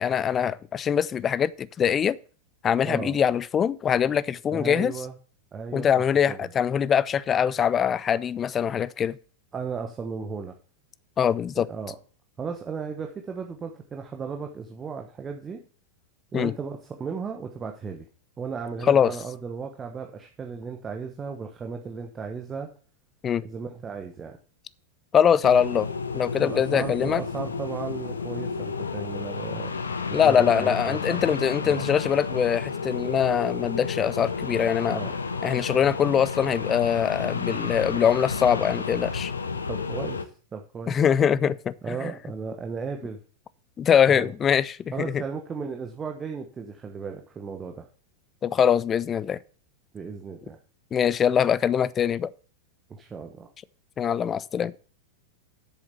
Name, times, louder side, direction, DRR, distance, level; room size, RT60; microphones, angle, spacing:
voice 1, 0.0-2.2 2.6-4.9 5.7-9.2 11.2-11.7 16.3-16.5 18.9-19.1 23.2-23.4 25.1-25.9 26.1-27.2 30.1-35.0 35.4-39.3 40.9-42.1 43.8-44.8 45.1-45.2 48.4-49.4 50.9-52.3 54.0-54.7, left 8 dB, 25° left, 0.4 m, -23 dB
voice 2, 4.5-5.1 5.5-5.9 6.3-6.5 9.5-10.5 11.5-12.0 12.4-15.6 16.3-18.1 18.4-22.7 23.4-24.4 26.4-29.7 30.1-31.3 31.6-31.8 34.9-35.2 39.7-40.3 40.5-41.0 41.8-43.2 44.1-44.3 44.9-47.9 49.9-50.6 52.9-53.5, right 5 dB, 20° right, 1.1 m, -35 dB
sound 1, 25.4-40.2, left 5 dB, 75° left, 0.9 m, -31 dB
8.1 x 7.1 x 5.7 m
figure-of-eight pair, 90°, 0 cm